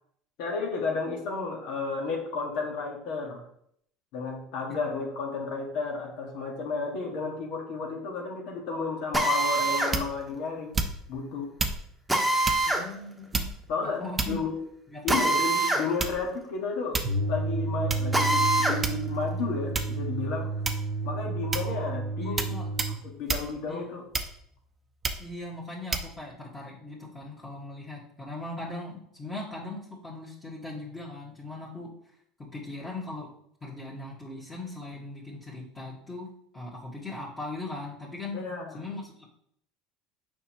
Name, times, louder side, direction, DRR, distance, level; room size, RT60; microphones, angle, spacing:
voice 1, 0.4-3.4 4.1-10.7 11.1-11.5 13.7-14.6 15.0-17.0 17.3-20.5 21.0-22.6 23.0-24.0 38.3-38.8, left 4 dB, 70° left, 0 dB, 1.8 m, -32 dB
Drill, 9.1-10.0 12.1-12.9 15.1-15.9 16.2-16.3 18.1-18.8, right 2 dB, 5° right, 1.2 m, -24 dB
sound 1, 9.9-10.3 10.7-11.2 11.6-11.8 12.4-12.7 13.3-13.7 14.2-14.6 15.1-15.4 16.0-16.4 16.9-17.2 17.9-18.0 18.8-19.2 19.7-20.0 20.6-21.0 21.5-21.8 22.4-22.5 22.8-23.0 23.3-23.5 24.1-24.5 25.0-25.3 25.9-26.1, right 3 dB, 25° right, 0.7 m, -30 dB
voice 2, 12.7-13.6 13.8-14.4 14.9-15.1 22.2-22.7 23.7-23.9 25.2-31.9 32.5-33.3 33.6-38.4 38.7-39.2, left 2 dB, 20° left, -8 dB, 1.9 m, -39 dB
sound 2, 17.0-23.0, right 3 dB, 75° right, 0.8 m, -31 dB
6.8 x 5.2 x 3.1 m, 0.68 s
supercardioid pair, 105°, 0 cm